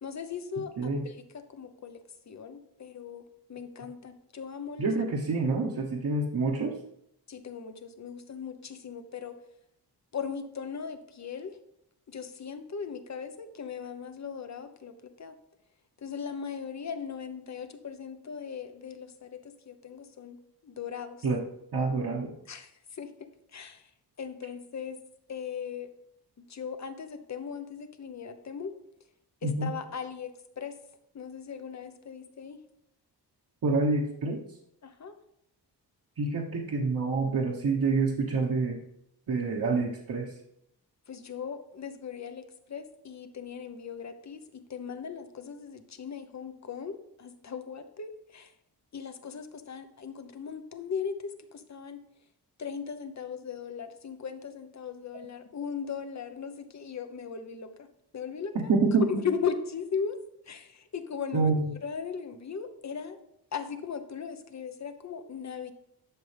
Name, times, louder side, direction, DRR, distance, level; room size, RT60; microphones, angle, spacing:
voice 1, 0.0-2.0 2.3-4.9 7.3-9.4 10.1-11.6 12.1-14.9 15.2-15.4 16.0-21.3 22.5-23.9 24.2-25.0 25.3-25.9 26.5-28.7 29.4-30.7 31.1-32.6 34.8-35.2 41.1-42.4 42.7-48.5 48.9-52.0 52.6-57.9 58.1-58.7 59.0-60.2 60.5-61.5 61.8-63.2 63.5-65.7, left 6 dB, 40° left, 9 dB, 0.9 m, -38 dB
voice 2, 4.8-6.7 21.2-21.4 21.7-22.3 29.4-29.7 33.6-34.4 36.2-38.8 39.3-40.3 58.5-59.0 61.3-61.7, right 3 dB, 55° right, -3 dB, 1.2 m, -27 dB
11.5 x 6.9 x 3.4 m, 0.77 s
wide cardioid pair, 145°, 41 cm